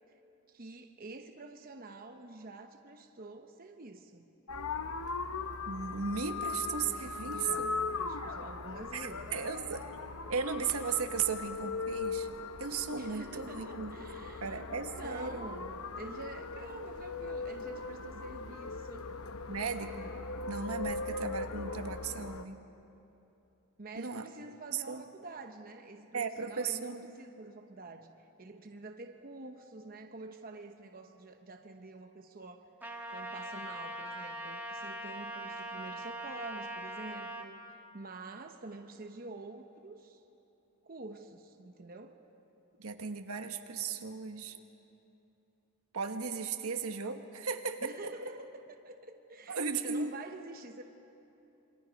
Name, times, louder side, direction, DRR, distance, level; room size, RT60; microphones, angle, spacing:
voice 1, 0.5-4.3 7.2-9.3 12.9-14.7 14.9-19.1 23.8-32.7 33.1-40.2 40.8-42.2 47.8-50.8, right 2 dB, 40° right, 5 dB, 0.9 m, -47 dB
sound 1, 4.5-22.4, left 4 dB, 75° left, 0.8 m, -39 dB
voice 2, 5.7-7.7 8.9-9.9 10.3-12.3 12.6-14.0 14.4-15.4 19.5-20.1 20.5-22.6 23.9-24.2 24.7-25.0 26.1-27.1 42.8-44.5 45.9-48.1 49.5-50.1, right 5 dB, 80° right, 6 dB, 1.3 m, -36 dB
Trumpet, 32.8-37.5, right 1 dB, 10° right, 1.7 m, -41 dB
27.5 x 24.5 x 5.2 m, 2.9 s
head